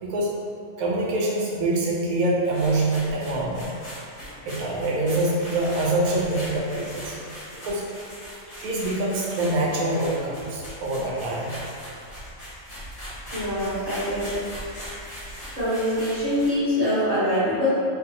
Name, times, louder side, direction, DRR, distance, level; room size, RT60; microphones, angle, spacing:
voice 1, 0.0-0.4 0.8-3.7 4.4-7.2 7.6-7.8 8.6-11.5, right 2 dB, 85° right, -4 dB, 1.1 m, -25 dB
sound 1, 2.4-16.6, equal, 55° left, 1.3 m, -40 dB
voice 2, 13.3-14.3 15.5-17.7, left 1 dB, 35° left, -14 dB, 1.1 m, -24 dB
3.0 x 2.5 x 2.7 m, 2.4 s
omnidirectional pair, 1.5 m